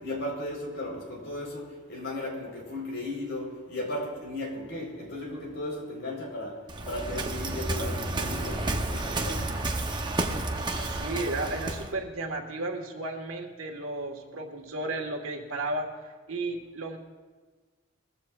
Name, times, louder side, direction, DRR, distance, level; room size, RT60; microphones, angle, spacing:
voice 1, 0.0-9.5, left 1 dB, 60° left, -1 dB, 4.3 m, -36 dB
Waves surf, 6.7-11.9, right 2 dB, 20° right, 0.9 m, -31 dB
voice 2, 10.8-17.0, right 2 dB, 90° right, 3 dB, 1.7 m, -34 dB
21.5 x 15.0 x 2.5 m, 1.4 s
head